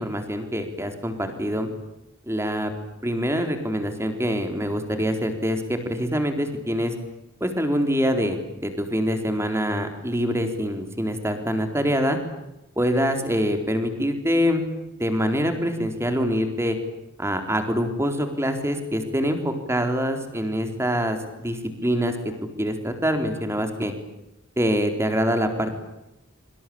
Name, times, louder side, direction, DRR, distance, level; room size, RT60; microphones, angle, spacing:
voice 1, 0.0-1.7 2.3-2.7 3.0-6.9 7.4-12.2 12.8-14.6 15.0-16.8 17.2-21.2 21.4-22.1 22.6-23.9 24.6-25.7, equal, 15° right, 6 dB, 4.1 m, -25 dB
26.5 x 25.5 x 8.8 m, 0.91 s
head